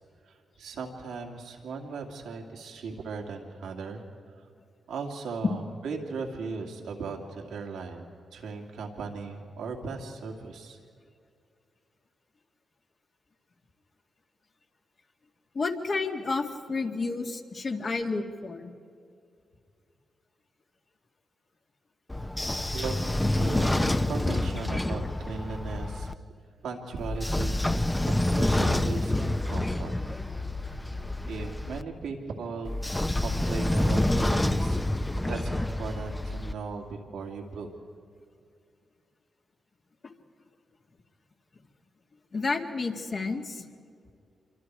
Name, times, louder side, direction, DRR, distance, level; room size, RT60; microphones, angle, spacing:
voice 1, 0.3-4.0 4.9-8.0 8.3-10.8 22.7-22.9 23.4-26.1 26.6-27.6 28.1-29.9 31.2-32.8 33.2-37.7, right 4 dB, 85° right, 2 dB, 2.5 m, -37 dB
voice 2, 15.5-18.7 42.3-43.6, left 3 dB, 50° left, 2 dB, 2.2 m, -31 dB
Train / Sliding door, 22.1-26.1 27.0-31.8 32.7-36.5, left 1 dB, 15° left, 0.9 m, -28 dB
27.0 x 24.5 x 4.8 m, 2.3 s
cardioid pair, 55°, 0 cm